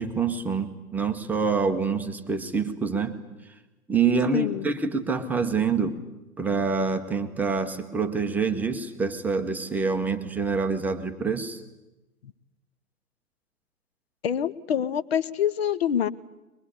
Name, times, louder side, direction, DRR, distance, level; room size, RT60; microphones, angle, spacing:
voice 1, 0.0-3.2 3.9-6.0 6.4-11.6, right 5 dB, 5° right, 6 dB, 0.8 m, -26 dB
voice 2, 4.3-4.7 12.2-12.3 14.2-16.1, left 9 dB, 45° left, 16 dB, 1.0 m, -26 dB
22.5 x 22.5 x 9.9 m, 1.0 s
figure-of-eight pair, 125°, 45 cm